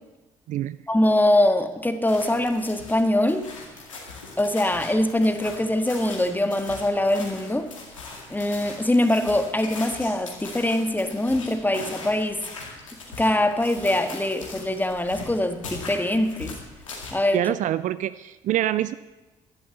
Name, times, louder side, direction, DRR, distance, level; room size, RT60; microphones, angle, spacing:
voice 1, 0.9-3.5 4.4-7.7 8.3-12.4 13.2-16.5 17.1-17.4, left 1 dB, 10° left, 8 dB, 1.6 m, -23 dB
sound 1, 2.1-17.1, left 3 dB, 85° left, 2.2 m, -40 dB
voice 2, 17.3-18.9, right 13 dB, 50° right, 15 dB, 0.5 m, -25 dB
11.0 x 11.0 x 7.6 m, 1.1 s
figure-of-eight pair, 45°, 16 cm